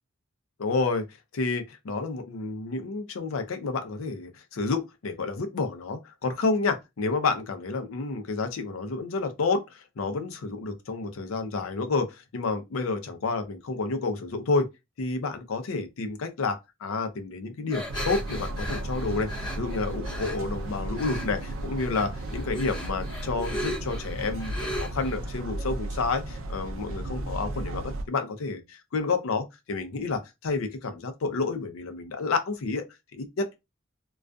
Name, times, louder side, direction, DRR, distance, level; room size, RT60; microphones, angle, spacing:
voice 1, 0.6-1.0 1.3-14.7 15.0-32.9 33.1-33.5, left 4 dB, 80° left, 0.5 m, -30 dB
sound 1, 17.7-20.4 21.0-21.5 21.8-25.2, equal, 20° left, 0.6 m, -36 dB
sound 2, 17.9-28.0, right 1 dB, 70° right, 0.4 m, -34 dB
2.5 x 2.3 x 2.2 m
head